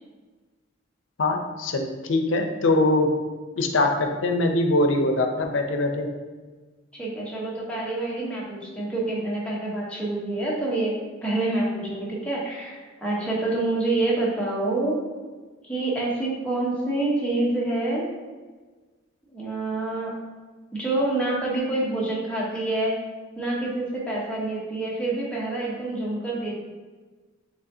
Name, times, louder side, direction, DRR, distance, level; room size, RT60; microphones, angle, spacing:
voice 1, 1.2-3.1 3.6-6.1, left 2 dB, 75° left, 4 dB, 0.5 m, -22 dB
voice 2, 6.9-10.9 11.2-15.0 15.6-18.1 19.3-20.1 20.7-23.0 23.4-26.5, right 2 dB, 5° left, -5 dB, 0.9 m, -27 dB
5.1 x 3.5 x 2.7 m, 1.3 s
head